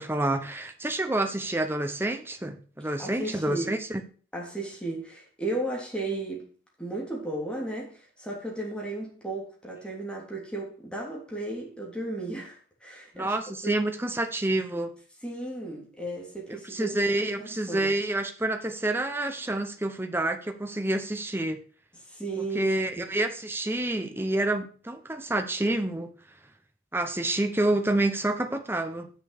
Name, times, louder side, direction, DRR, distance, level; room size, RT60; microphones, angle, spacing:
voice 1, 0.0-4.0 13.1-14.9 16.7-21.6 22.4-26.1 26.9-29.1, right 1 dB, 10° right, 0.9 m, -28 dB
voice 2, 3.0-3.7 4.3-6.5 6.8-13.3 13.6-13.7 15.2-17.9 22.1-22.6 23.0-23.1, right 2 dB, 5° left, 3.2 m, -35 dB
7.5 x 6.7 x 6.5 m
head